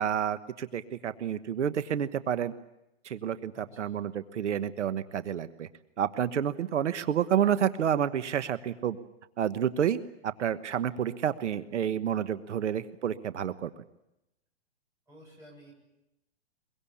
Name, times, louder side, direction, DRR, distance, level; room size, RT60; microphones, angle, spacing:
voice 1, 0.0-2.5 3.0-5.7 6.0-9.0 9.4-13.7, right 9 dB, 80° right, 12 dB, 1.3 m, -29 dB
voice 2, 3.5-4.0 15.1-15.7, equal, 10° right, -3 dB, 7.5 m, -53 dB
23.0 x 23.0 x 8.6 m, 0.88 s
hypercardioid pair, 175°, 35 cm